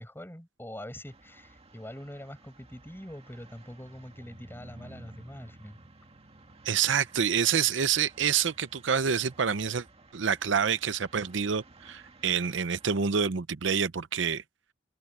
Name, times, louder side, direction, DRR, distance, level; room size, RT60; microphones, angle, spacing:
voice 1, 0.0-5.8, equal, 10° left, 6.9 m, -44 dB
sound 1, 1.1-13.1, right 2 dB, 35° right, 1.9 m, -54 dB
voice 2, 6.6-9.8 10.1-14.4, right 7 dB, 75° right, 0.7 m, -27 dB
head